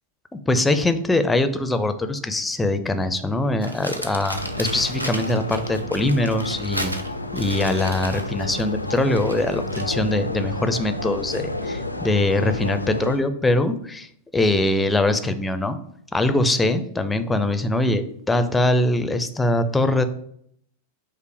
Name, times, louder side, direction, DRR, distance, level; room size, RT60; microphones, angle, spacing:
voice 1, 0.3-6.9 7.3-15.8 16.1-20.0, left 2 dB, 10° left, 10 dB, 0.4 m, -22 dB
Crumpling crinkling, 3.6-10.0, right 1 dB, 85° right, 0.5 m, -34 dB
sound 1, 4.3-13.2, left 1 dB, 85° left, 0.4 m, -31 dB
5.3 x 2.0 x 4.7 m, 0.67 s
figure-of-eight pair, 90°, 0 cm